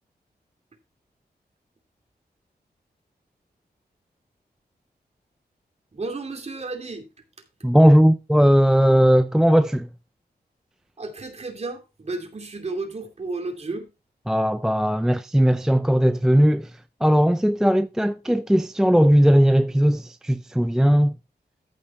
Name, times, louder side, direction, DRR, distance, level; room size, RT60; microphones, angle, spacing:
voice 1, 5.9-7.1 11.0-13.9, right 3 dB, 40° right, 2.8 m, -32 dB
voice 2, 7.6-9.9 14.3-16.7 17.0-21.1, equal, 5° right, 0.4 m, -18 dB
14.0 x 5.6 x 4.3 m
wide cardioid pair, 120°, 17 cm